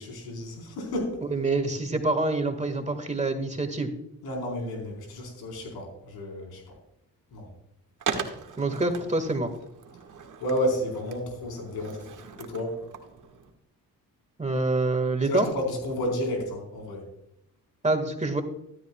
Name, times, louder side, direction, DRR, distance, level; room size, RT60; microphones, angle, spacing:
voice 1, 0.0-1.2 4.2-6.6 7.3-7.5 10.4-12.0 12.4-12.7 15.2-17.0, left 1 dB, 90° left, 1 dB, 4.3 m, -31 dB
voice 2, 1.3-3.9 8.6-9.5 14.4-15.5 17.8-18.4, right 2 dB, 20° right, 7 dB, 1.8 m, -26 dB
Skateboard, 8.0-13.5, right 6 dB, 55° right, 1.8 m, -38 dB
13.5 x 12.0 x 2.3 m, 0.80 s
cardioid pair, 70°, 36 cm